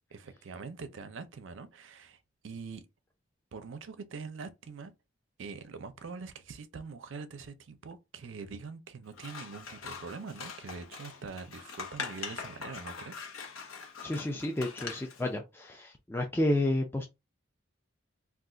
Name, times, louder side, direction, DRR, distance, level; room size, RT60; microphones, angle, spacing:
voice 1, 0.1-2.8 3.5-4.9 5.4-13.2 13.5-13.7, right 4 dB, 65° right, 0.5 m, -44 dB
Scissors, 9.1-15.2, left 5 dB, 90° left, 0.8 m, -43 dB
voice 2, 14.0-17.1, left 1 dB, 10° left, 0.3 m, -31 dB
2.4 x 2.3 x 3.7 m
head